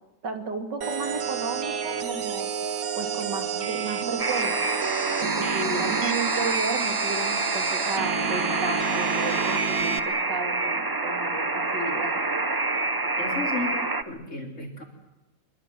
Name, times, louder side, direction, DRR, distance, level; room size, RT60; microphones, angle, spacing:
voice 1, 0.2-2.5 2.9-4.6 5.2-12.2, right 3 dB, 80° right, 5 dB, 3.5 m, -33 dB
sound 1, 0.8-10.0, right 7 dB, 55° right, 1.6 m, -30 dB
Alarm, 4.2-14.0, right 2 dB, 25° right, 0.4 m, -27 dB
voice 2, 13.2-13.7 14.1-14.8, left 3 dB, 45° left, 2 dB, 4.3 m, -33 dB
25.0 x 23.5 x 7.8 m, 0.99 s
omnidirectional pair, 1.8 m